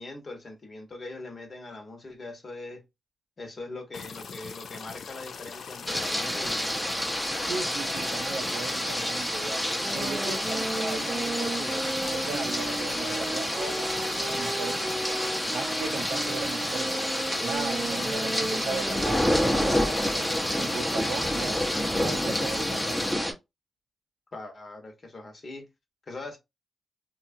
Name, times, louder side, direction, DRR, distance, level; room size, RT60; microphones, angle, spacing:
voice 1, 0.0-2.8 3.4-6.9 24.3-25.7 26.1-26.4, left 2 dB, 50° left, 1.1 m, -41 dB
sound 1, 3.9-23.1, left 6 dB, 70° left, 0.3 m, -42 dB
sound 2, 5.9-23.3, equal, 5° left, 0.8 m, -29 dB
voice 2, 7.5-9.6 9.9-11.8 12.1-13.9 14.2-15.2 15.5-20.3 20.6-21.6 21.9-23.3, right 4 dB, 90° right, 0.5 m, -37 dB
sound 3, 9.8-19.8, right 2 dB, 35° right, 0.5 m, -35 dB
2.7 x 2.4 x 2.6 m
cardioid pair, 60°, 0 cm